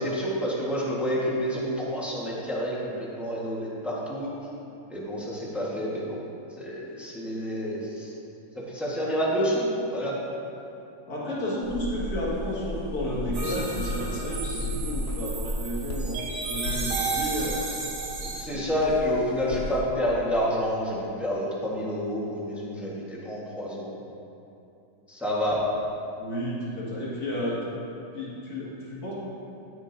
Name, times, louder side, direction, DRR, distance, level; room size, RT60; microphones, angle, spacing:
voice 1, 0.0-4.3 4.9-6.2 6.6-8.1 8.7-10.2 18.4-23.9 25.1-25.6, equal, ahead, -6 dB, 0.9 m, -28 dB
voice 2, 11.1-17.7 18.2-18.8 26.2-27.6 28.1-29.1, equal, 50° left, -7 dB, 2.4 m, -32 dB
sound 1, 11.6-19.8, left 1 dB, 85° left, 0.6 m, -34 dB
sound 2, 13.3-18.4, right 4 dB, 85° right, 2.1 m, -33 dB
13.5 x 6.1 x 2.7 m, 2.8 s
omnidirectional pair, 2.2 m